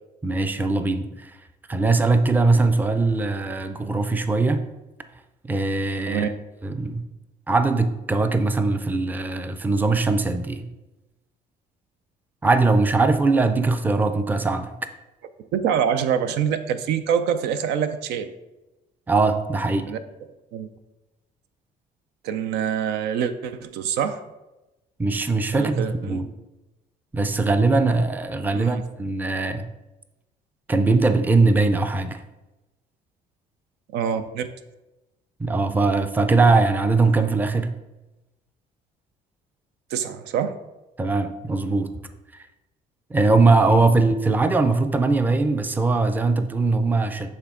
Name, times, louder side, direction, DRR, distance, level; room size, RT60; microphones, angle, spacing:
voice 1, 0.2-1.4 1.7-4.6 5.4-6.3 6.6-7.1 7.5-10.7 12.4-14.7 19.1-19.9 25.0-26.3 27.1-29.7 30.7-32.2 35.4-37.7 41.0-41.9 42.3-42.4 43.1-47.3, right 3 dB, 10° right, 9 dB, 0.4 m, -21 dB
voice 2, 15.4-18.3 19.9-20.0 20.5-20.7 22.2-24.2 25.5-26.2 28.5-28.8 33.9-34.5 39.9-40.6, right 8 dB, 85° right, 10 dB, 0.5 m, -25 dB
7.9 x 3.5 x 3.7 m, 1.0 s
cardioid pair, 110°, 17 cm